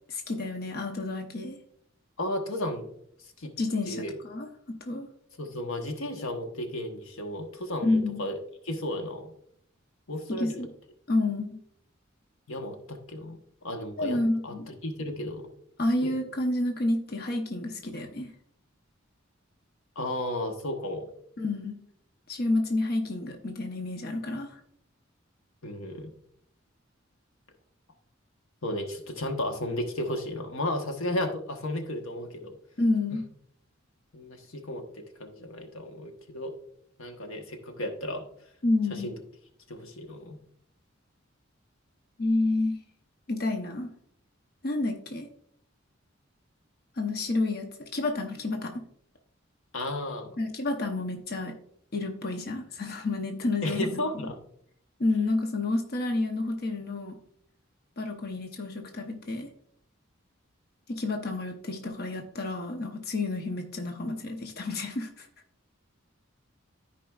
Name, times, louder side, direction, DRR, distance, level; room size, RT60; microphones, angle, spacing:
voice 1, 0.1-1.6 3.6-5.1 7.8-8.3 10.3-10.7 11.1-11.6 14.0-14.7 15.8-18.3 21.4-21.8 22.3-24.6 32.8-33.2 38.6-39.1 42.2-42.8 43.3-43.9 44.6-45.3 47.0-48.8 50.4-51.5 51.9-54.3 55.0-57.1 58.0-59.5 60.9-65.3, left 2 dB, 50° left, 3 dB, 0.8 m, -29 dB
voice 2, 2.2-2.9 3.4-3.5 3.9-4.1 5.4-8.3 8.6-9.3 10.1-10.6 12.5-13.4 13.6-14.2 14.4-15.5 16.0-16.1 20.0-21.1 25.6-26.1 28.6-32.6 34.1-36.5 37.0-38.2 39.0-39.1 39.7-40.4 49.7-50.4 53.6-54.4, left 1 dB, 90° left, 5 dB, 1.2 m, -34 dB
13.5 x 5.0 x 2.4 m, 0.66 s
head